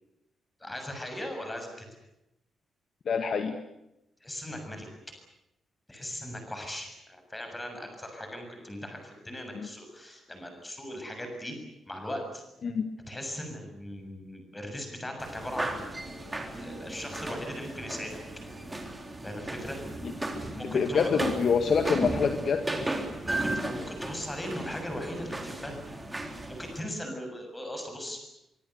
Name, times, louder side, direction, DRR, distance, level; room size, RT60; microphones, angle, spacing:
voice 1, 0.6-1.9 4.2-4.9 5.9-11.6 11.8-12.4 13.1-16.1 16.6-18.2 19.2-19.8 20.5-21.3 23.2-25.8 26.5-28.3, left 1 dB, 10° left, 4 dB, 7.1 m, -38 dB
voice 2, 3.1-3.6 9.5-9.7 12.6-12.9 20.0-20.1 20.6-22.7, left 6 dB, 45° left, 7 dB, 1.8 m, -26 dB
sound 1, 15.2-26.8, right 1 dB, 10° right, 3.6 m, -35 dB
25.0 x 24.0 x 8.2 m, 0.88 s
wide cardioid pair, 175°, 0 cm